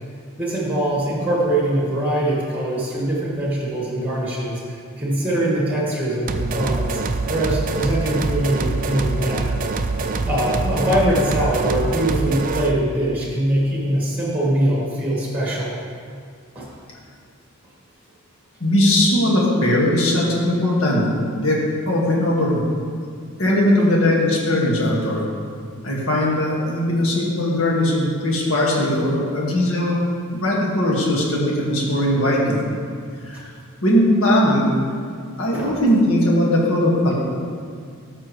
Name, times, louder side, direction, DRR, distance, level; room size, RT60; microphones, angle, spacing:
voice 1, 0.4-9.6 10.2-15.7 16.5-16.7 33.3-33.4 35.5-35.7, right 1 dB, 10° right, -5 dB, 1.7 m, -22 dB
sound 1, 6.3-12.8, right 3 dB, 40° right, 0.4 m, -24 dB
voice 2, 18.6-21.1 21.4-21.6 21.9-22.7 23.4-25.2 25.8-30.1 30.3-32.6 33.3-33.5 33.8-34.7 35.4-37.1, left 1 dB, 65° left, -4 dB, 1.8 m, -19 dB
13.0 x 6.1 x 3.2 m, 2.2 s
head